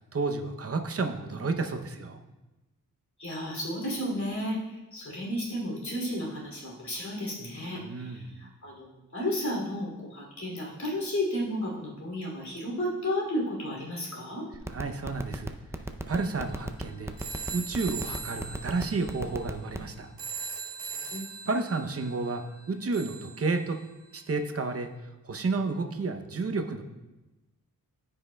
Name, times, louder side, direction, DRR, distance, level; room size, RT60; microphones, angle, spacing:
voice 1, 0.1-2.2 7.8-8.5 14.7-15.5 16.1-17.1 17.5-20.1 21.5-23.8 24.1-24.9 25.2-26.8, right 3 dB, 40° right, 5 dB, 0.7 m, -31 dB
voice 2, 3.2-14.5 20.9-21.4, left 1 dB, 50° left, -3 dB, 2.7 m, -33 dB
sound 1, 14.5-19.9, right 2 dB, 10° right, 0.4 m, -33 dB
sound 2, 16.1-24.1, right 5 dB, 75° right, 1.0 m, -41 dB
13.5 x 5.5 x 2.2 m, 1.1 s
wide cardioid pair, 90°, 36 cm